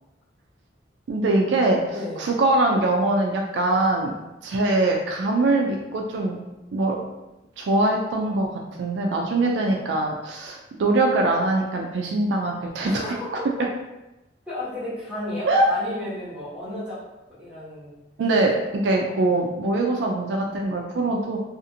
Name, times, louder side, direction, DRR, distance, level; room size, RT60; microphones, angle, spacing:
voice 1, 1.1-1.8 2.2-4.1 4.4-6.4 6.7-7.0 7.6-13.1 15.5-15.7 18.2-21.4, right 2 dB, 70° right, 1 dB, 0.3 m, -22 dB
voice 2, 1.9-2.3 9.6-9.7 12.8-13.2 14.5-17.0 17.4-17.9 19.1-19.5, left 1 dB, 5° right, -12 dB, 1.2 m, -33 dB
2.6 x 2.4 x 2.6 m, 0.99 s
head